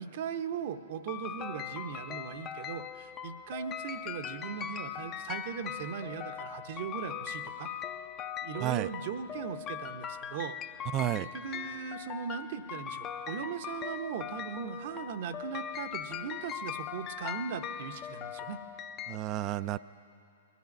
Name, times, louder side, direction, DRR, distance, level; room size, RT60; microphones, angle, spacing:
voice 1, 0.0-7.7 8.4-10.6 11.2-18.6, right 7 dB, 55° right, 10 dB, 0.8 m, -39 dB
sound 1, 1.1-19.2, left 8 dB, 30° left, 0.5 m, -40 dB
voice 2, 10.9-11.3 19.1-19.8, right 13 dB, 35° right, 16 dB, 0.3 m, -31 dB
20.5 x 12.5 x 5.3 m, 2.6 s
hypercardioid pair, 120°, 0 cm